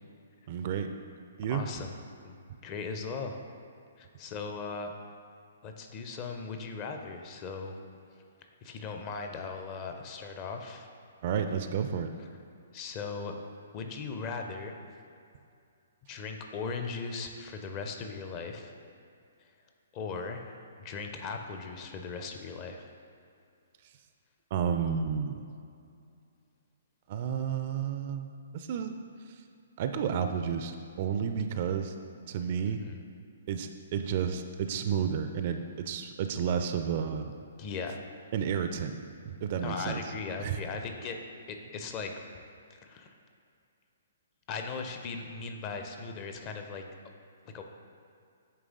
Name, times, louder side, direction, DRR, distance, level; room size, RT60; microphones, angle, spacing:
voice 1, 0.5-0.9 1.4-1.6 11.2-12.1 24.5-25.4 27.1-28.9 29.8-31.9 32.3-32.8 33.5-37.3 38.3-40.0 40.4-40.6, right 7 dB, 40° right, 7 dB, 0.3 m, -31 dB
voice 2, 1.5-1.9 2.2-3.4 4.0-4.9 5.6-7.7 8.6-10.9 12.7-13.3 13.7-14.7 16.1-18.7 19.9-22.9 32.8-33.0 37.6-38.0 39.5-41.2 41.5-42.1 42.7-43.1 44.5-46.8 47.5-47.6, left 4 dB, 30° left, 4 dB, 0.5 m, -38 dB
8.7 x 3.3 x 3.7 m, 2.5 s
figure-of-eight pair, 125°, 0 cm